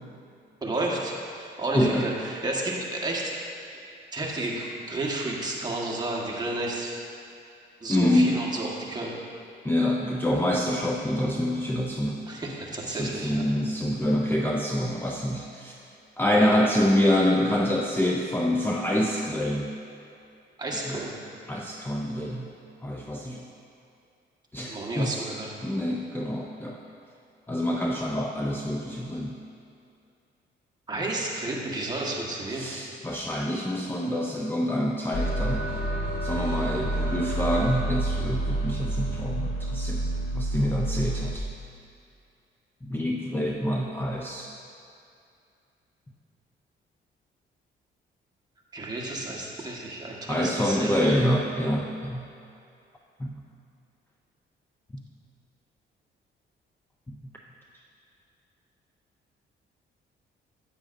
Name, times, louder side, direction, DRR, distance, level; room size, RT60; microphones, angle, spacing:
voice 1, 0.6-3.3 4.1-7.0 7.8-9.1 12.3-13.5 20.6-21.1 24.7-25.5 30.9-32.7 36.3-36.6 48.7-51.2, right 2 dB, 20° right, -3 dB, 1.4 m, -31 dB
voice 2, 1.7-2.1 7.9-8.5 9.6-12.2 12.9-15.8 16.2-19.7 20.7-21.0 21.5-22.5 22.8-23.5 24.5-25.2 25.6-26.8 27.5-29.4 32.5-35.7 36.2-41.5 42.8-44.5 50.3-52.3 53.2-53.3 54.9-55.0, left 1 dB, 10° left, -1 dB, 0.5 m, -26 dB
sound 1, 35.1-41.3, right 1 dB, 55° left, 1.3 m, -29 dB
9.5 x 8.5 x 2.6 m, 2.5 s
cardioid pair, 90°, 20 cm